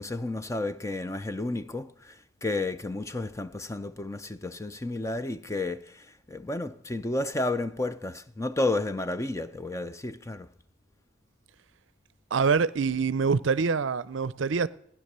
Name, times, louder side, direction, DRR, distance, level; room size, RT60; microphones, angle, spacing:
voice 1, 0.0-10.5, left 2 dB, 15° left, 0.5 m, -32 dB
voice 2, 12.3-14.7, right 5 dB, 65° right, 0.5 m, -25 dB
15.5 x 10.0 x 6.7 m
head